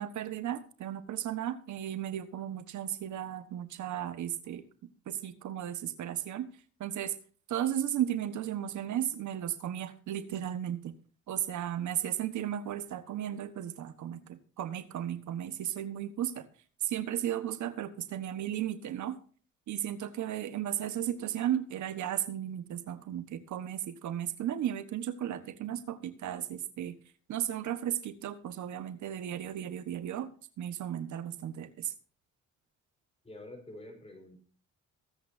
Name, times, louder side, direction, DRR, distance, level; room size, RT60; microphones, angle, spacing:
voice 1, 0.0-4.6 5.1-6.5 6.8-7.1 7.5-10.9 11.3-16.5 16.8-19.2 19.7-27.0 27.3-30.3 30.6-31.9, right 11 dB, 75° right, 12 dB, 1.4 m, -35 dB
voice 2, 33.2-34.4, left 1 dB, 20° left, 5 dB, 5.2 m, -47 dB
22.5 x 8.5 x 2.7 m, 0.43 s
cardioid pair, 90°, 30 cm